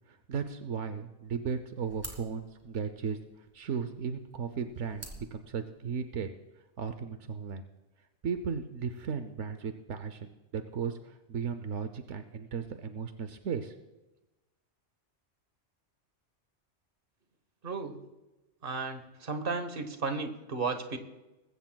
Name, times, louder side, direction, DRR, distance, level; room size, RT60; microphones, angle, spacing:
voice 1, 0.1-6.3 6.8-7.6 8.2-13.7, right 6 dB, 80° right, 9 dB, 1.1 m, -36 dB
sound 1, 1.2-6.2, right 1 dB, 20° right, 2.5 m, -51 dB
voice 2, 17.6-17.9 18.6-21.0, right 4 dB, 50° right, 8 dB, 1.4 m, -34 dB
21.0 x 15.5 x 2.3 m, 1.0 s
omnidirectional pair, 1.2 m